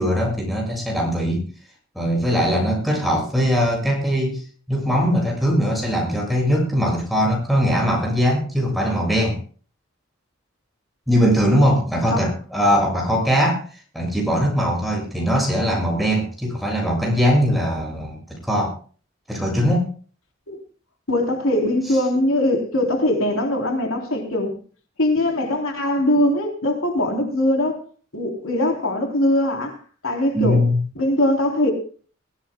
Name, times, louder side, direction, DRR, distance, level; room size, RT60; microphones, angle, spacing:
voice 1, 0.0-1.4 2.0-4.4 4.7-9.4 11.1-13.6 13.9-18.2 18.4-18.7 19.3-19.9 30.3-30.8, equal, ahead, 7.1 m, -20 dB
voice 2, 21.1-24.6 25.0-27.8 28.1-29.8 30.0-30.6 31.0-31.7, left 1 dB, 80° left, 3.5 m, -21 dB
23.0 x 16.0 x 2.2 m
head